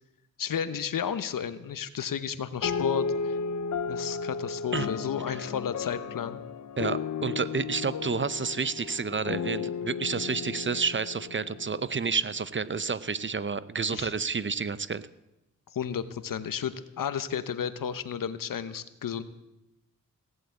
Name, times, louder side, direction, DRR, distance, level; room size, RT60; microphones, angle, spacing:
voice 1, 0.4-3.4 3.9-6.4 13.9-14.1 15.7-19.2, left 8 dB, 85° left, 13 dB, 1.0 m, -32 dB
sound 1, 2.6-12.4, left 5 dB, 60° left, 0.7 m, -34 dB
voice 2, 6.8-15.0, right 5 dB, 35° right, 16 dB, 0.7 m, -30 dB
17.0 x 8.1 x 8.2 m, 0.93 s
cardioid pair, 55°, 32 cm